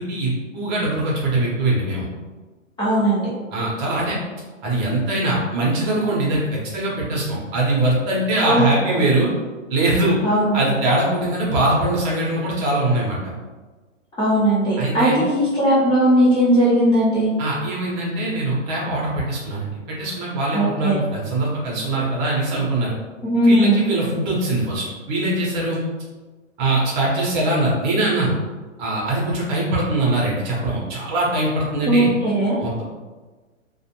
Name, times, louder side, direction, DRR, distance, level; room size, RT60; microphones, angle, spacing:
voice 1, 0.0-2.1 3.5-4.2 4.6-9.3 9.7-10.2 10.5-13.2 14.8-15.2 17.4-22.9 23.4-25.8 26.6-28.3 28.8-32.1 32.6-32.8, right 2 dB, 35° right, -5 dB, 0.8 m, -22 dB
voice 2, 2.8-3.3 8.4-9.0 10.2-10.6 14.2-17.3 20.5-21.0 23.2-23.8 31.9-32.6, right 1 dB, 10° left, -11 dB, 0.6 m, -18 dB
2.4 x 2.2 x 2.9 m, 1.3 s
hypercardioid pair, 120°, 39 cm